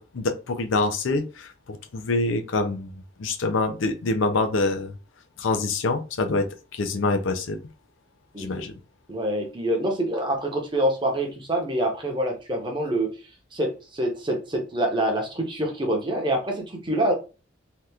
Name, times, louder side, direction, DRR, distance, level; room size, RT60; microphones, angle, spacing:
voice 1, 0.0-4.9 5.4-6.5 6.7-7.6 8.4-8.7, left 3 dB, 75° left, 0.5 m, -26 dB
voice 2, 9.1-13.2 13.5-17.1, right 1 dB, 25° right, 0.7 m, -26 dB
2.8 x 2.4 x 3.4 m
head